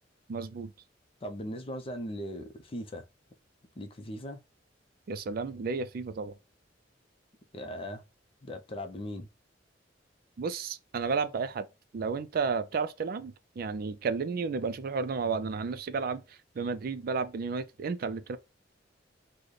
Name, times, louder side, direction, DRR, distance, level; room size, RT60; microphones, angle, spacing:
voice 1, 0.3-0.7 5.1-6.4 10.4-11.7 11.9-18.4, right 5 dB, 55° right, 0.4 m, -32 dB
voice 2, 1.2-3.1 3.8-4.4 7.5-8.0 8.4-9.3, equal, 30° left, 0.5 m, -39 dB
3.9 x 2.1 x 3.1 m
head